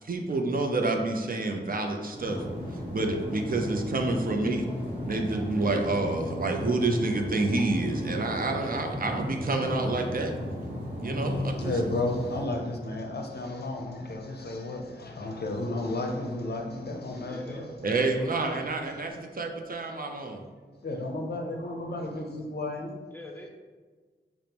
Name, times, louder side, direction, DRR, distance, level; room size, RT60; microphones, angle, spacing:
voice 1, 0.0-2.4 2.9-4.7 5.1-10.3 11.0-11.8 17.8-20.4, right 2 dB, 50° right, 3 dB, 0.4 m, -28 dB
sound 1, 2.1-12.5, left 1 dB, 25° right, 1.3 m, -35 dB
voice 2, 11.4-17.6 20.8-22.9, left 2 dB, 60° left, 2 dB, 0.5 m, -33 dB
voice 3, 17.2-17.9 18.2-18.4 23.1-23.5, left 1 dB, 10° left, 0 dB, 0.6 m, -43 dB
5.0 x 2.0 x 2.9 m, 1.5 s
wide cardioid pair, 65°, 19 cm